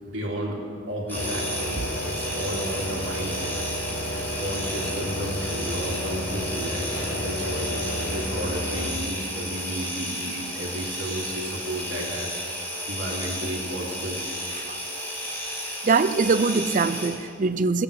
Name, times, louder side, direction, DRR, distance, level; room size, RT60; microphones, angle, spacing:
voice 1, 0.0-0.6 0.9-3.6 4.4-14.4, right 1 dB, 75° right, -3 dB, 2.9 m, -33 dB
sound 1, 1.1-8.9, equal, 65° left, 1.6 m, -32 dB
sound 2, 1.1-17.1, equal, 10° left, 4.3 m, -33 dB
voice 2, 15.8-17.8, right 4 dB, 45° right, 13 dB, 0.5 m, -23 dB
17.5 x 8.7 x 6.6 m, 2.3 s
head